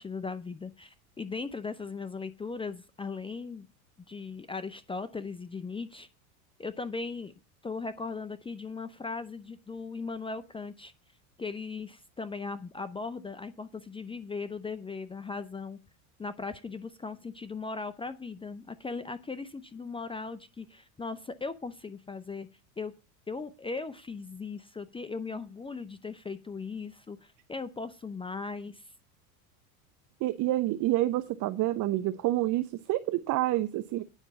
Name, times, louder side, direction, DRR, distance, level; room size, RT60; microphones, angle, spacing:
voice 1, 0.0-3.7 4.1-6.1 6.6-7.3 7.6-10.9 11.4-15.8 16.2-22.5 22.8-22.9 23.3-28.8, left 4 dB, 10° left, 13 dB, 0.7 m, -38 dB
voice 2, 30.2-34.0, right 15 dB, 45° right, 12 dB, 0.8 m, -28 dB
9.9 x 6.0 x 6.9 m, 0.31 s
hypercardioid pair, 100°, 43 cm